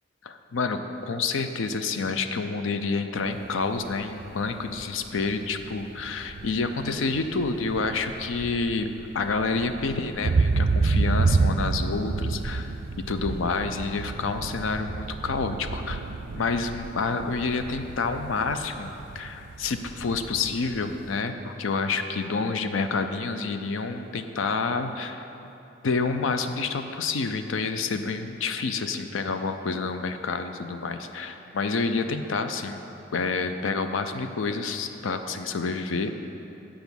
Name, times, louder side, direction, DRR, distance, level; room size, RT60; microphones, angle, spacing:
voice 1, 0.2-8.9 9.1-12.7 13.1-16.0 16.3-25.3 25.8-32.8 33.1-36.1, left 4 dB, 80° left, 8 dB, 0.5 m, -28 dB
sound 1, 3.3-21.1, right 3 dB, 70° right, 0.4 m, -30 dB
8.2 x 5.0 x 7.0 m, 2.9 s
head